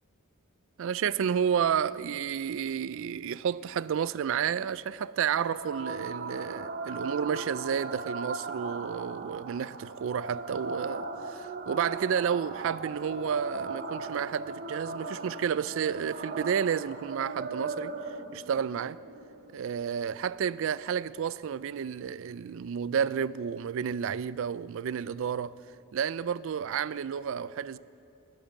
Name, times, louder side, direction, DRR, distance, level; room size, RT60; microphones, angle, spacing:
voice 1, 0.8-17.9 18.3-19.0 19.5-25.6 25.9-27.8, right 7 dB, 65° right, 0.3 m, -31 dB
sound 1, 5.3-20.3, right 3 dB, 45° right, 0.9 m, -38 dB
20.0 x 7.7 x 7.1 m
head